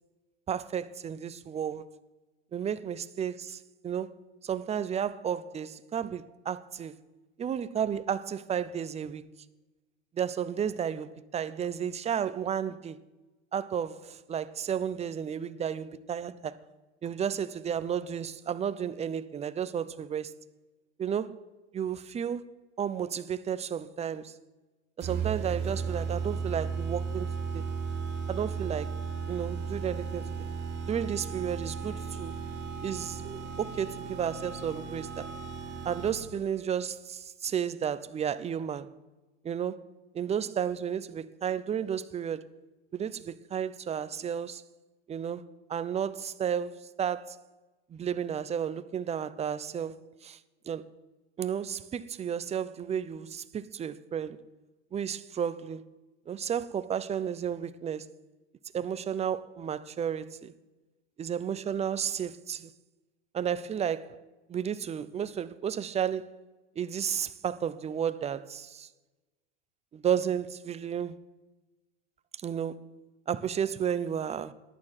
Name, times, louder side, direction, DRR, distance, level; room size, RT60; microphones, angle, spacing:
voice 1, 0.5-1.8 2.5-4.1 4.4-6.9 7.4-9.3 10.1-13.0 13.5-16.6 17.0-20.3 21.0-21.4 21.7-24.4 25.0-27.7 28.3-29.0 29.3-30.5 30.9-32.4 32.8-35.3 35.8-38.9 39.4-39.9 40.1-42.5 42.9-44.6 45.1-47.4 47.9-50.4 50.7-50.9 51.4-54.4 54.9-55.9 56.3-58.1 58.7-60.5 61.2-62.7 63.3-64.2 64.5-66.4 66.8-68.9 69.9-71.2 72.4-72.9 73.3-74.5, right 8 dB, 20° right, 0.7 m, -32 dB
sound 1, 25.0-36.4, right 5 dB, 35° right, 4.4 m, -35 dB
11.0 x 9.9 x 8.9 m
supercardioid pair, 115°, 31 cm